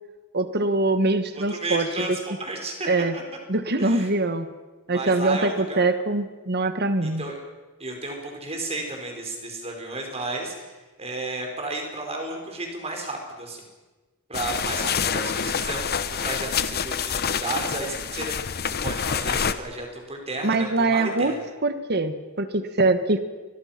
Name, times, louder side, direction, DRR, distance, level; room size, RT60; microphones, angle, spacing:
voice 1, 0.3-2.1 2.9-3.1 3.5-4.5 4.9-7.2 20.4-21.3 21.6-23.2, right 2 dB, 50° right, 10 dB, 1.5 m, -23 dB
voice 2, 1.3-2.9 3.8-4.1 4.9-5.8 7.0-7.4 7.8-10.5 11.0-13.6 14.3-18.3 18.6-21.4, right 2 dB, 30° right, 2 dB, 5.1 m, -33 dB
sound 1, 14.3-19.5, left 7 dB, 45° left, 0.9 m, -27 dB
28.5 x 23.0 x 6.0 m, 1.3 s
head